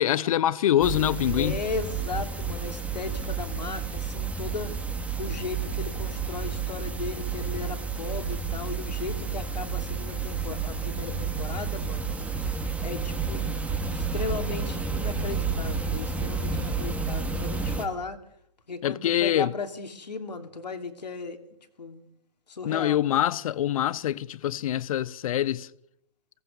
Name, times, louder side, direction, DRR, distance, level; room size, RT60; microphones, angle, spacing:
voice 1, 0.0-1.6 18.8-19.5 22.6-25.7, left 12 dB, 55° left, 0.9 m, -25 dB
sound 1, 0.8-17.8, right 5 dB, 5° right, 2.1 m, -31 dB
voice 2, 1.3-4.7 5.2-12.1 12.8-13.6 13.9-18.2 18.7-21.4 21.8-22.0 22.5-23.0, left 4 dB, 90° left, 3.0 m, -36 dB
23.0 x 18.0 x 6.6 m
hypercardioid pair, 130°, 21 cm